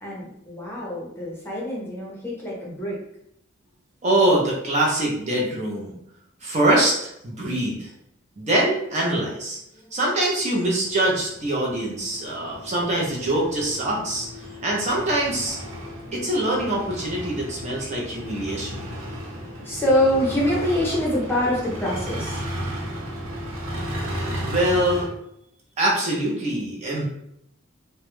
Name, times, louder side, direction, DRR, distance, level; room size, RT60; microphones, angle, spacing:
voice 1, 0.0-3.0 19.6-22.4, left 1 dB, 10° left, -5 dB, 0.6 m, -25 dB
voice 2, 4.0-5.9 6.4-7.9 8.4-9.6 9.9-14.3 14.6-15.6 16.1-18.8 24.4-25.1 25.8-27.1, right 1 dB, 35° right, -3 dB, 0.5 m, -23 dB
sound 1, 10.5-25.1, equal, 90° right, 0.7 m, -34 dB
2.2 x 2.0 x 3.0 m, 0.75 s
head